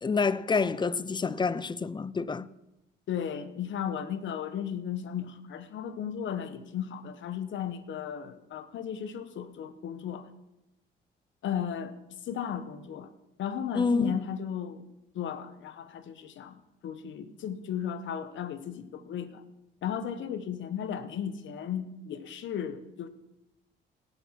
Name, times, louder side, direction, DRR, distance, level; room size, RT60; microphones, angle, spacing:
voice 1, 0.0-2.5 13.7-14.1, left 4 dB, 20° left, 0.5 m, -28 dB
voice 2, 3.1-10.3 11.4-11.9 12.2-13.1 13.4-14.9 15.1-19.4 19.8-23.1, left 8 dB, 70° left, 1.2 m, -35 dB
17.5 x 7.0 x 5.9 m
cardioid pair, 90°, 20 cm